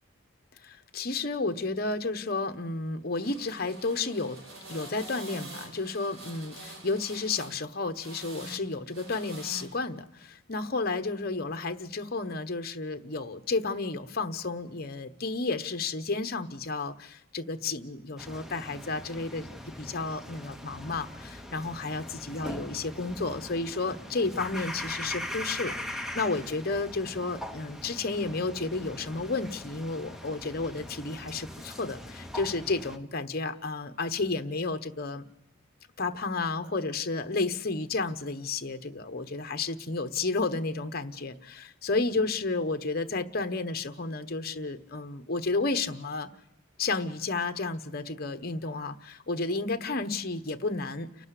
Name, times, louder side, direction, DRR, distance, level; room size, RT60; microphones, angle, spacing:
voice 1, 0.6-4.4 4.7-35.3 36.0-46.3 46.8-51.3, left 3 dB, 45° left, 8 dB, 1.0 m, -32 dB
sound 1, 3.2-7.6 7.9-8.6 8.9-9.6, right 1 dB, 75° right, 5.5 m, -45 dB
sound 2, 18.2-33.0, left 1 dB, ahead, 0.8 m, -41 dB
29.5 x 12.0 x 8.3 m, 0.90 s
head